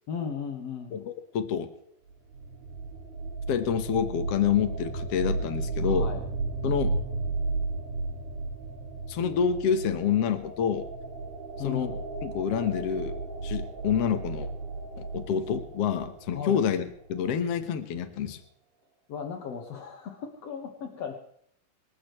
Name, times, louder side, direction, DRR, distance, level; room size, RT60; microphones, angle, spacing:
voice 1, 0.1-1.0 5.8-6.2 11.6-12.0 16.3-16.6 19.1-21.2, left 7 dB, 55° left, 2 dB, 2.0 m, -36 dB
voice 2, 0.9-1.7 3.5-6.1 6.6-7.0 9.1-10.9 11.6-11.9 12.2-14.5 15.0-18.4, left 8 dB, 85° left, 8 dB, 1.3 m, -28 dB
sound 1, 2.1-16.9, right 3 dB, 65° right, 4.6 m, -34 dB
27.0 x 14.0 x 3.3 m, 0.69 s
omnidirectional pair, 4.9 m